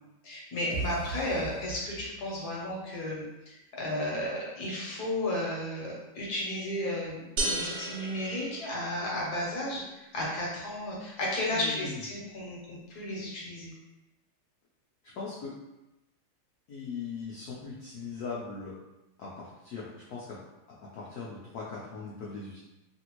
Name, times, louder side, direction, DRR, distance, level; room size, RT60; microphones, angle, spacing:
voice 1, 0.2-13.7, left 1 dB, 60° left, -4 dB, 1.2 m, -33 dB
sound 1, 0.7-2.5, right 3 dB, 55° right, 1.2 m, -38 dB
sound 2, 7.4-9.2, right 2 dB, 75° right, 0.9 m, -34 dB
voice 2, 11.5-12.0 15.1-15.5 16.7-18.7 19.2-20.4 20.9-22.6, left 4 dB, 80° left, -6 dB, 0.8 m, -39 dB
3.3 x 2.6 x 2.9 m, 0.96 s
omnidirectional pair, 2.3 m